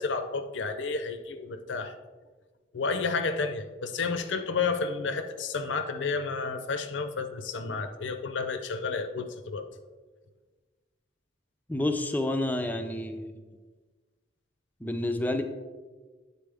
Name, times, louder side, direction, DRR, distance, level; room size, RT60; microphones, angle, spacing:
voice 1, 0.0-1.9 2.7-9.7, left 4 dB, 85° left, 9 dB, 0.6 m, -31 dB
voice 2, 11.7-13.4 14.8-15.4, left 1 dB, 10° left, 6 dB, 0.4 m, -29 dB
8.7 x 4.1 x 3.4 m, 1.4 s
head